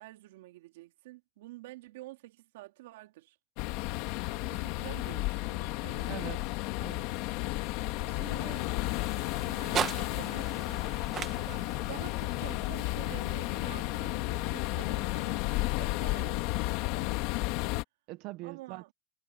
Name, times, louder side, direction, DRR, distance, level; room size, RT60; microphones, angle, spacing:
voice 1, 0.0-3.4 4.3-6.3 8.0-8.7 9.5-10.8 11.5-17.4 18.4-18.9, right 18 dB, 80° right, 2.6 m, -49 dB
sound 1, 3.6-17.8, left 20 dB, 55° left, 1.6 m, -33 dB
sound 2, 3.8-13.1, left 21 dB, 75° left, 5.6 m, -57 dB
voice 2, 6.1-7.2 18.1-18.9, right 19 dB, 50° right, 0.8 m, -43 dB
sound 3, 6.8-15.0, right 9 dB, 30° right, 1.3 m, -41 dB
supercardioid pair, 145°, 0 cm